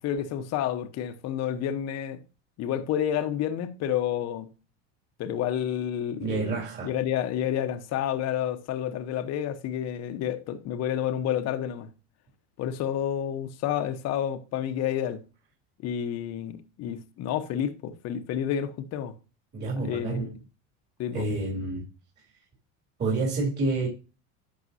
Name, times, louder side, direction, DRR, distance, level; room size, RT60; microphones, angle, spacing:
voice 1, 0.0-2.2 2.6-4.5 5.2-6.5 6.8-11.9 12.6-15.2 15.8-19.1 19.8-20.3 21.0-21.3, left 10 dB, 50° left, 1.1 m, -30 dB
voice 2, 6.2-6.9 19.5-20.3 21.1-21.9 23.0-23.9, right 3 dB, 30° right, 3.4 m, -28 dB
11.5 x 6.6 x 2.8 m
supercardioid pair, 115°, 33 cm